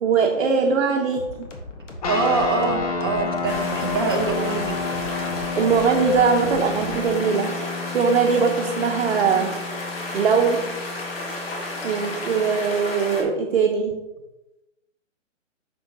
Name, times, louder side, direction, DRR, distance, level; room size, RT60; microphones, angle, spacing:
voice 1, 0.0-1.5 5.6-7.6 7.9-9.6 10.1-10.8 11.8-14.0, right 5 dB, 60° right, 2 dB, 0.9 m, -21 dB
sound 1, 1.1-7.1, left 2 dB, 70° left, 1.5 m, -39 dB
sound 2, 2.0-12.7, left 5 dB, 30° left, 0.6 m, -31 dB
voice 2, 2.0-4.8, right 4 dB, 20° right, 2 dB, 0.4 m, -24 dB
sound 3, 3.5-13.2, left 2 dB, 50° left, 1.7 m, -32 dB
6.4 x 6.2 x 2.9 m, 1.0 s
hypercardioid pair, 145°, 38 cm